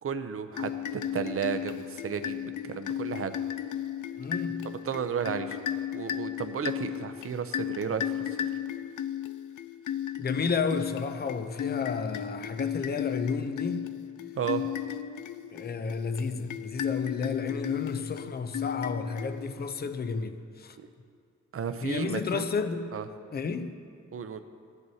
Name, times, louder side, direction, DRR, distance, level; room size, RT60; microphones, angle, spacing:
voice 1, 0.0-3.4 4.6-5.6 5.9-8.3 14.4-14.7 20.8-20.9 21.5-22.4 22.9-23.0 24.1-24.4, right 7 dB, 50° right, 0.6 m, -33 dB
sound 1, 0.5-19.7, left 10 dB, 85° left, 0.5 m, -35 dB
voice 2, 4.2-4.8 10.2-13.9 15.5-20.8 21.8-22.9 23.3-23.8, left 5 dB, 35° left, 0.5 m, -32 dB
16.5 x 10.5 x 2.8 m
wide cardioid pair, 170°, 29 cm